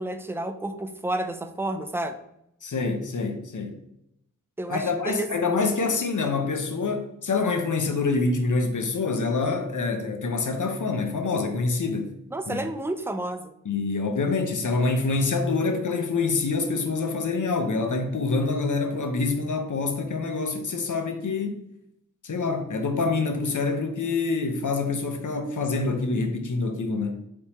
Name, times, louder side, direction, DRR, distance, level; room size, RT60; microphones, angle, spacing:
voice 1, 0.0-2.2 4.6-5.3 12.3-13.5, right 1 dB, 10° right, 0.3 m, -30 dB
voice 2, 2.6-3.8 4.7-12.1 12.5-12.6 13.6-21.6 22.2-27.2, left 3 dB, 65° left, 0.6 m, -26 dB
3.5 x 2.9 x 4.1 m
wide cardioid pair, 45°, 33 cm